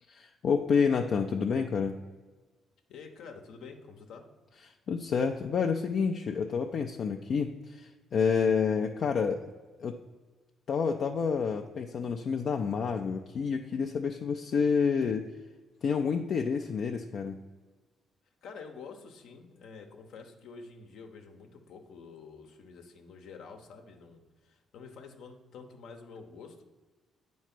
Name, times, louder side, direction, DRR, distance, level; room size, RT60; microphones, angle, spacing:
voice 1, 0.1-2.0 4.9-9.4 9.8-10.0 10.7-15.3 15.8-17.4, left 6 dB, 60° left, 3 dB, 0.4 m, -29 dB
voice 2, 2.9-4.3 18.4-26.6, left 5 dB, 80° left, 4 dB, 0.9 m, -48 dB
8.9 x 3.1 x 5.9 m, 1.3 s
cardioid pair, 90°, 0 cm